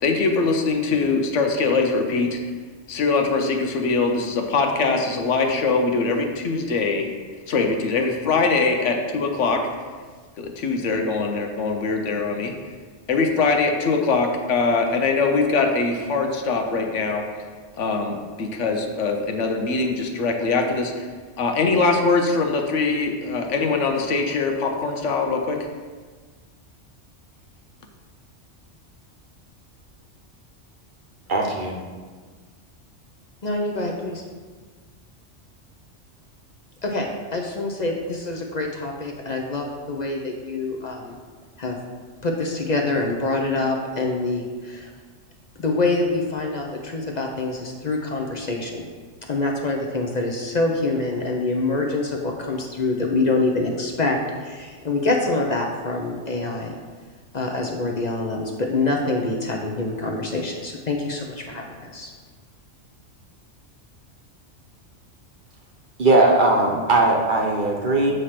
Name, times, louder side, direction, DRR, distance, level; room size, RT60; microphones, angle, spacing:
voice 1, 0.0-2.4 2.9-7.1 7.5-9.6 10.4-12.5 13.1-17.2 17.8-21.1 21.4-25.6, left 4 dB, 80° left, 4 dB, 1.1 m, -22 dB
voice 2, 31.3-31.7 66.0-68.1, right 2 dB, 45° right, 0 dB, 0.9 m, -19 dB
voice 3, 33.4-34.2 36.8-41.2 41.6-41.8 42.2-44.9 45.6-48.8 49.3-56.7 57.3-62.1, left 2 dB, 45° left, 1 dB, 0.7 m, -25 dB
7.8 x 3.2 x 5.7 m, 1.5 s
omnidirectional pair, 1.2 m